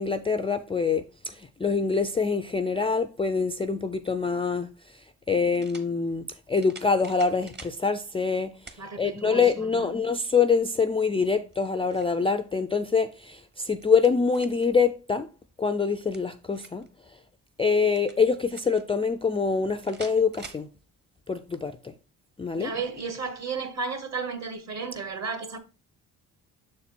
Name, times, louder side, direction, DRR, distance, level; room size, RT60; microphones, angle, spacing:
voice 1, 0.0-4.7 5.3-8.5 9.0-15.3 15.6-16.8 17.6-20.7 21.3-21.9 22.4-22.8, left 5 dB, 15° left, 0.3 m, -25 dB
sound 1, 4.3-4.4 5.5-5.9 6.6-7.8 8.7-8.8 9.4-9.5 11.4-12.2 13.5-14.7 15.9-16.9 17.9-18.8 19.8-20.7, right 3 dB, 25° right, 1.0 m, -47 dB
voice 2, 8.8-9.4 9.8-9.9 22.5-25.6, right 5 dB, 45° right, 1.4 m, -33 dB
6.5 x 4.3 x 4.2 m
cardioid pair, 80°, 39 cm